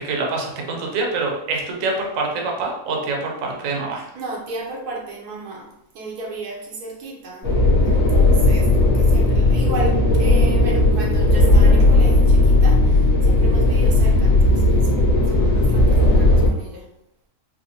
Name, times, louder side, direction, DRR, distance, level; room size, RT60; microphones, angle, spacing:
voice 1, 0.0-4.1, right 3 dB, 65° right, 0 dB, 1.0 m, -25 dB
voice 2, 4.1-7.5 7.8-14.9 15.3-16.9, right 2 dB, 85° right, -2 dB, 1.4 m, -34 dB
sound 1, 7.4-16.5, left 2 dB, 65° left, 1.2 m, -15 dB
4.7 x 2.2 x 2.8 m, 0.78 s
omnidirectional pair, 1.6 m